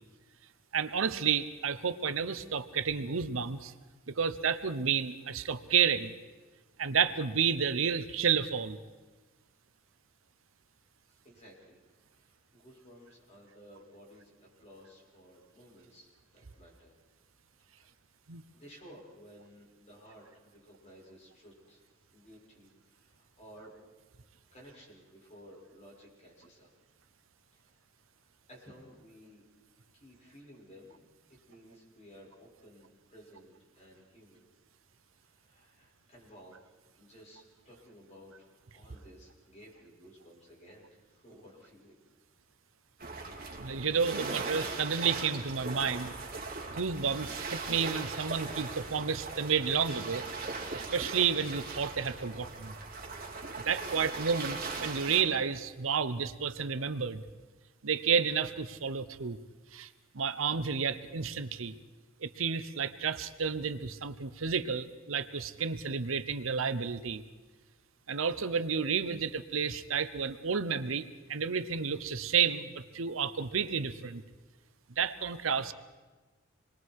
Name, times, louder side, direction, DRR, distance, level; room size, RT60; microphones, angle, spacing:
voice 1, 0.7-3.7 4.1-6.1 6.8-8.8 18.3-18.4 43.6-46.1 46.7-50.2 50.7-52.7 53.6-57.2 57.8-59.4 59.7-59.9 60.1-61.7 62.2-67.2 68.1-74.2 75.0-75.7, right 6 dB, 80° right, 12 dB, 0.9 m, -31 dB
voice 2, 11.2-11.8 12.1-17.0 17.7-17.9 18.5-21.9 22.1-23.7 24.5-26.7 27.5-27.8 28.2-29.4 29.9-31.0 31.3-34.4 35.2-41.9, equal, 35° left, -3 dB, 6.7 m, -55 dB
sound 1, 43.0-55.2, right 3 dB, 45° right, 2.9 m, -39 dB
27.5 x 22.0 x 4.8 m, 1.3 s
head